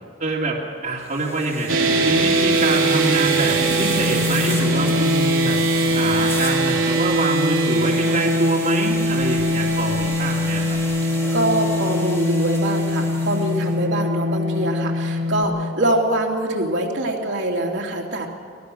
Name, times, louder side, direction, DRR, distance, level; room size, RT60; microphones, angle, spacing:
voice 1, 0.2-0.6 0.8-1.7 2.0-5.6 5.9-10.8, right 2 dB, 40° right, -3 dB, 2.6 m, -25 dB
sound 1, 1.0-13.8, left 1 dB, 15° left, 2.6 m, -34 dB
sound 2, 1.7-15.4, right 1 dB, 80° right, 3.2 m, -21 dB
voice 2, 11.3-18.3, right 1 dB, 65° right, -1 dB, 2.9 m, -24 dB
24.5 x 18.0 x 6.4 m, 2.3 s
head